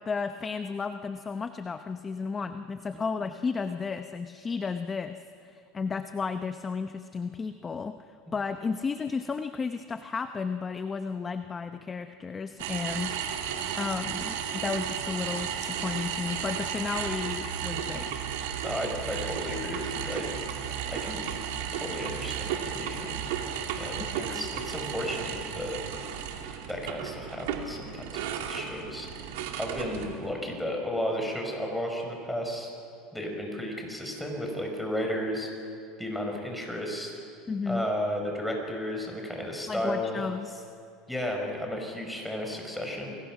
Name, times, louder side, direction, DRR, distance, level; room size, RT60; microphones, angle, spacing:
voice 1, 0.0-13.4 13.8-18.1 24.1-24.4 37.5-37.9 39.7-40.6, left 5 dB, 20° left, 8 dB, 0.7 m, -33 dB
sound 1, 12.6-30.3, right 8 dB, 85° right, 2.5 m, -34 dB
voice 2, 18.6-20.3 20.9-21.3 21.7-23.3 23.8-25.8 26.7-29.1 29.6-32.7 33.1-35.5 36.0-37.1 37.6-40.2 41.1-43.2, equal, ahead, 1 dB, 4.9 m, -33 dB
28.5 x 21.5 x 6.0 m, 2.6 s
supercardioid pair, 135°, 0 cm